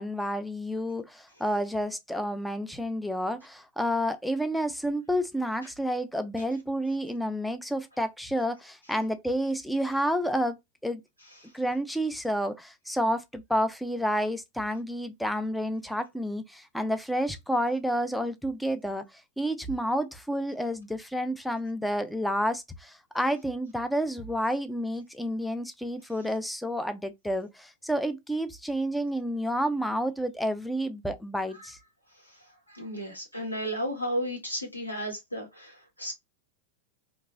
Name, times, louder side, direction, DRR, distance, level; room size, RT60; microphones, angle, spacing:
voice 1, 0.0-11.0 11.5-19.0 19.4-31.8, equal, ahead, 0.4 m, -30 dB
voice 2, 32.2-36.1, equal, 85° left, 1.3 m, -34 dB
2.9 x 2.5 x 2.3 m
figure-of-eight pair, 90°, 0 cm